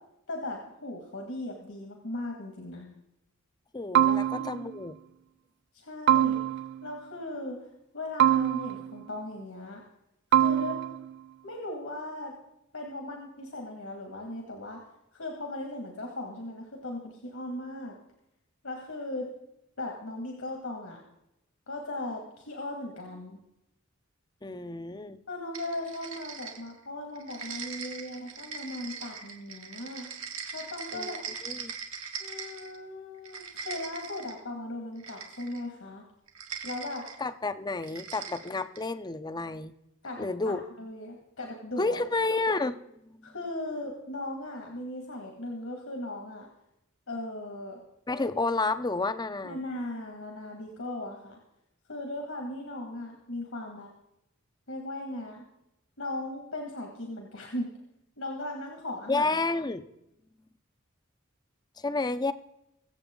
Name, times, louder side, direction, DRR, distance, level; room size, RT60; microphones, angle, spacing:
voice 1, 0.3-2.9 4.1-4.6 5.7-9.8 10.3-10.8 11.4-12.3 12.7-14.8 15.1-17.9 18.6-19.3 19.8-21.0 21.7-23.4 25.3-30.1 30.5-31.2 32.2-36.0 36.6-37.1 40.0-42.0 43.2-46.5 47.1-47.8 49.4-51.4 51.9-53.9 54.7-55.4 56.0-57.7 58.2-59.3, left 1 dB, 75° left, 1 dB, 2.2 m, -38 dB
voice 2, 3.7-5.0 24.4-25.2 30.9-31.2 31.4-31.7 37.2-39.7 40.2-40.6 41.8-43.3 48.1-49.6 59.1-59.8 61.8-62.3, left 3 dB, 20° left, 12 dB, 0.6 m, -30 dB
sound 1, 3.9-4.8 6.1-6.9 8.2-9.0 10.3-11.1, right 10 dB, 55° right, 0.4 m, -24 dB
sound 2, 25.5-26.8 27.2-32.8 33.1-34.4 35.0-35.7 36.3-37.2 37.8-38.9, right 6 dB, 80° right, 2.0 m, -41 dB
23.5 x 7.9 x 3.8 m, 0.84 s
head